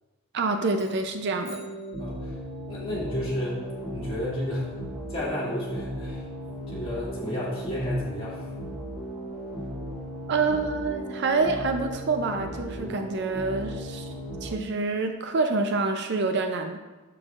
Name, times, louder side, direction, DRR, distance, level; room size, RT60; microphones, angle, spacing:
voice 1, 0.3-1.6 10.3-14.1 14.4-16.8, right 3 dB, 55° right, 6 dB, 0.4 m, -27 dB
sound 1, 0.7-2.7, equal, 30° right, 1.5 m, -51 dB
sound 2, 1.0-14.6, equal, ahead, 1.9 m, -36 dB
voice 2, 2.0-2.3 2.7-3.6 3.9-4.8 5.1-6.2 6.7-8.4 12.7-13.0, left 1 dB, 25° left, -8 dB, 2.2 m, -32 dB
7.4 x 6.8 x 2.4 m, 1.2 s
head